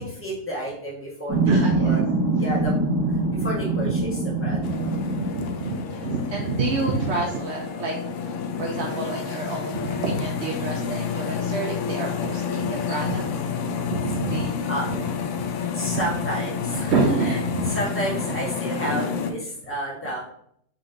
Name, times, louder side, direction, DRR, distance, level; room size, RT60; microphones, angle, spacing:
voice 1, 0.0-2.0 2.4-2.7 3.3-4.6 14.7-15.1 15.7-16.9 17.2-17.4 17.7-20.2, right 1 dB, 10° left, -5 dB, 1.2 m, -31 dB
sound 1, 1.3-5.8 7.0-7.2 7.6-9.6, right 3 dB, 15° right, 1.2 m, -25 dB
voice 2, 1.5-2.0 3.2-3.5 3.8-4.0 4.4-8.0 8.6-13.2 13.8-15.0 15.9-16.0 16.8-17.8, right 3 dB, 75° right, 0 dB, 0.6 m, -28 dB
sound 2, 4.6-19.3, left 6 dB, 85° left, 0.6 m, -29 dB
4.1 x 3.2 x 3.8 m, 0.69 s
omnidirectional pair, 1.8 m